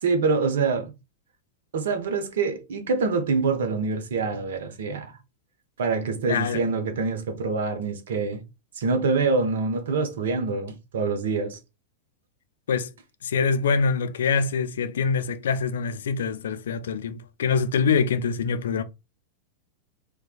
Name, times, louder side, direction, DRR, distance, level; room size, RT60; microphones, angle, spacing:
voice 1, 0.0-0.9 1.7-5.2 5.8-8.4 8.8-11.6, right 4 dB, 60° right, 0.8 m, -25 dB
voice 2, 6.3-6.6 12.7-12.9 13.2-18.8, left 5 dB, 65° left, 0.3 m, -24 dB
4.4 x 2.2 x 2.4 m
figure-of-eight pair, 90°, 0 cm